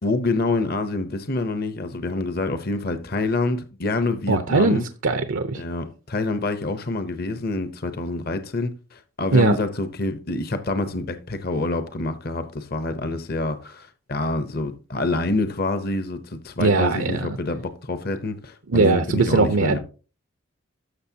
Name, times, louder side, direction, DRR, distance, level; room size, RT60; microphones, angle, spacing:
voice 1, 0.0-4.8 5.6-19.8, left 2 dB, 45° left, 0.8 m, -27 dB
voice 2, 4.3-5.6 9.3-9.6 16.6-17.4 18.7-19.8, right 3 dB, 75° right, 0.7 m, -20 dB
13.0 x 6.3 x 2.8 m
head